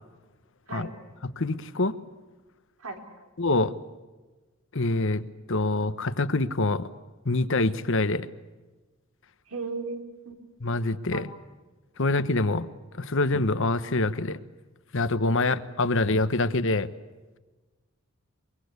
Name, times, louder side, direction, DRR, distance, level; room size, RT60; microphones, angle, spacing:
voice 1, 1.4-2.0 3.4-3.7 4.7-6.9 7.2-8.3 10.6-11.3 12.0-12.7 12.9-14.4 14.9-16.9, left 2 dB, 60° left, 13 dB, 1.2 m, -25 dB
voice 2, 2.8-3.3 9.5-10.3 11.1-11.2 15.4-15.5, right 3 dB, 85° right, 4 dB, 4.0 m, -36 dB
24.0 x 23.5 x 8.2 m, 1.2 s
head